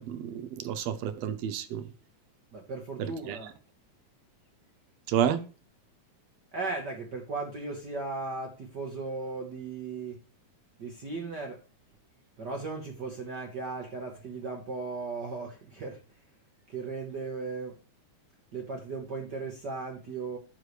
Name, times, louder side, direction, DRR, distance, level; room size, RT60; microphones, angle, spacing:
voice 1, 0.0-1.9 3.0-3.4 5.1-5.4, right 9 dB, 75° right, 1.6 m, -30 dB
voice 2, 2.5-3.6 6.5-10.2 10.8-11.6 12.4-16.0 16.7-17.7 18.5-20.4, right 3 dB, 50° right, 1.3 m, -36 dB
9.6 x 6.5 x 3.2 m
omnidirectional pair, 3.5 m